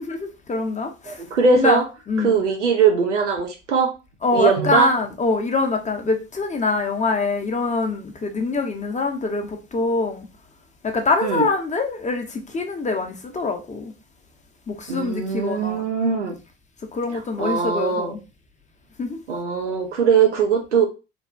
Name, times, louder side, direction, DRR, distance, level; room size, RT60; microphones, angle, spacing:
voice 1, 0.1-1.2 1.6-2.4 4.2-10.3 10.8-13.9 14.7-15.8 16.9-18.2 19.0-19.2, left 3 dB, 20° left, 0.6 m, -24 dB
voice 2, 1.1-1.8 2.2-3.9 4.3-4.9 11.2-11.5 14.9-16.4 17.4-18.2 19.3-20.9, right 5 dB, 90° right, 0.5 m, -20 dB
3.3 x 2.1 x 2.4 m
figure-of-eight pair, 50°, 35 cm